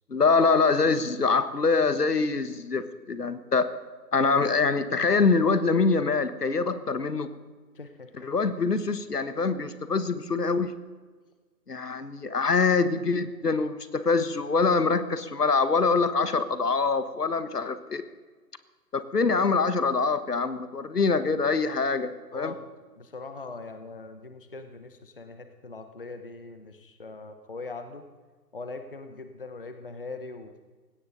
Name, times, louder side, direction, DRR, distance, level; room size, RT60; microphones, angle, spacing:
voice 1, 0.1-3.7 4.1-7.3 8.2-10.7 11.7-18.0 18.9-22.5, left 4 dB, 65° left, 12 dB, 1.5 m, -24 dB
voice 2, 7.7-8.3 22.3-22.7 23.0-28.1 28.5-30.5, left 3 dB, 35° left, 8 dB, 0.8 m, -41 dB
19.5 x 17.0 x 4.0 m, 1.4 s
figure-of-eight pair, 160°, 50 cm